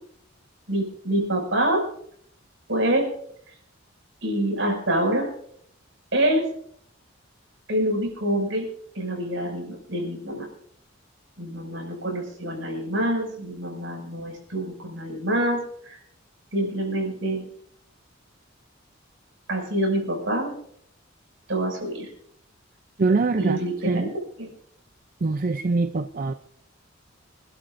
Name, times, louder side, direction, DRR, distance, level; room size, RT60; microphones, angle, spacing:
voice 1, 0.7-1.8 2.7-3.1 4.2-5.3 6.1-6.5 7.7-8.7 8.9-10.5 11.4-16.0 16.5-17.5 19.5-20.5 21.5-22.1 23.4-24.1 24.4-24.5, right 1 dB, 70° right, 1 dB, 6.0 m, -26 dB
voice 2, 23.0-23.6 23.8-24.1 25.2-26.3, right 3 dB, 45° right, 9 dB, 0.5 m, -23 dB
26.5 x 12.5 x 2.6 m, 0.66 s
head